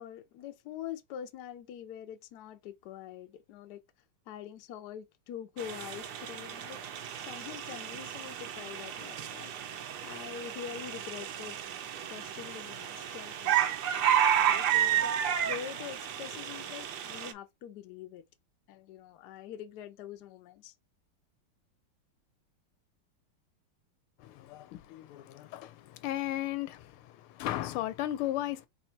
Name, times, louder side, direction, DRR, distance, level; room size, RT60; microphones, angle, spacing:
voice 1, 0.0-3.8 4.3-6.8 7.3-9.6 10.0-11.6 12.1-18.2 18.7-20.7, left 9 dB, 65° left, 1.0 m, -44 dB
sound 1, 5.6-17.3, right 10 dB, 70° right, 1.0 m, -32 dB
voice 2, 24.2-28.7, left 14 dB, 90° left, 1.5 m, -36 dB
4.3 x 2.7 x 4.4 m
omnidirectional pair, 2.4 m